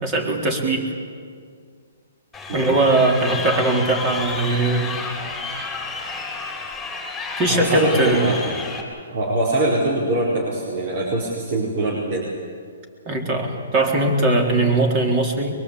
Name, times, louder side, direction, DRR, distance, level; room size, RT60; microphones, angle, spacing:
voice 1, 0.0-0.9 2.5-4.9 7.4-8.3 13.1-15.5, right 2 dB, 25° right, 2 dB, 3.7 m, -20 dB
Crowd, 2.3-8.8, left 4 dB, 5° left, 3.7 m, -31 dB
voice 2, 2.5-2.8 7.5-8.4 9.1-12.3, right 2 dB, 45° right, -5 dB, 4.7 m, -23 dB
23.0 x 22.5 x 8.6 m, 2.1 s
hypercardioid pair, 155°, 0 cm